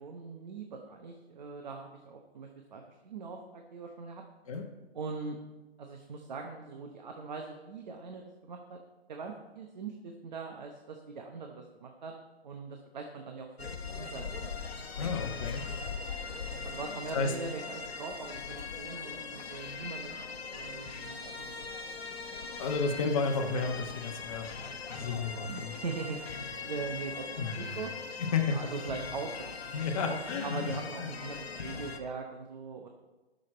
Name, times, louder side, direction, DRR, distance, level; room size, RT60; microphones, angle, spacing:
voice 1, 0.0-4.2 4.9-5.4 5.8-8.8 9.1-12.1 12.4-14.6 16.3-21.7 25.5-27.3 27.5-27.9 28.5-29.5 30.0-32.9, right 4 dB, 45° right, 3 dB, 0.9 m, -41 dB
sound 1, 13.6-32.0, left 5 dB, 70° left, 1.1 m, -40 dB
voice 2, 15.0-15.6 17.1-17.3 22.6-24.5 24.9-25.7 27.4-27.8 28.2-28.6 29.7-31.1, left 4 dB, 30° left, 3 dB, 1.2 m, -32 dB
13.5 x 6.5 x 4.4 m, 1.1 s
hypercardioid pair, 160°, 32 cm